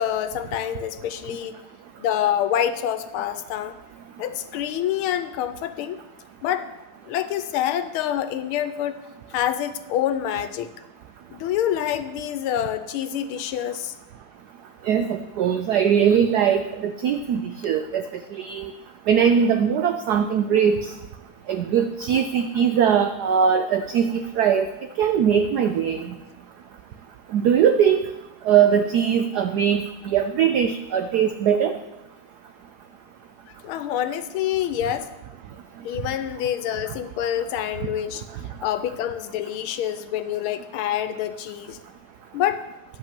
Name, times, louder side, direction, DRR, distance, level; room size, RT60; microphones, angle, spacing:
voice 1, 0.0-1.6 2.0-3.7 4.2-6.0 6.4-6.7 7.0-9.0 9.3-10.7 11.3-13.9 33.6-35.1 35.8-38.2 38.6-41.8 42.3-42.6, left 10 dB, 80° left, 11 dB, 1.5 m, -26 dB
voice 2, 14.8-18.0 18.3-18.7 19.1-20.9 21.5-24.7 25.0-26.2 27.3-28.0 28.4-31.8 36.9-37.0, right 8 dB, 85° right, 8 dB, 0.8 m, -21 dB
11.0 x 5.4 x 7.4 m, 0.97 s
omnidirectional pair, 2.4 m